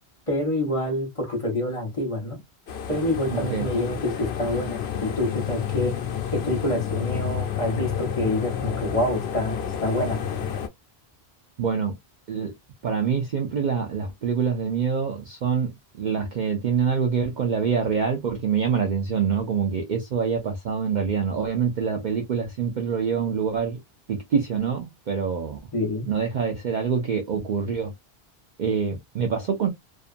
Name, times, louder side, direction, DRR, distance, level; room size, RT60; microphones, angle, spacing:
voice 1, 0.3-2.4 2.9-5.9 6.3-10.2 25.7-26.1, left 1 dB, 30° left, 1.2 m, -27 dB
sound 1, 2.7-10.7, left 9 dB, 75° left, 0.8 m, -30 dB
voice 2, 3.3-3.7 11.6-11.9 12.3-12.5 12.8-15.7 16.0-23.8 24.1-25.6 26.1-27.9 28.6-29.7, right 6 dB, 55° right, 0.6 m, -25 dB
2.6 x 2.4 x 2.4 m
omnidirectional pair, 1.1 m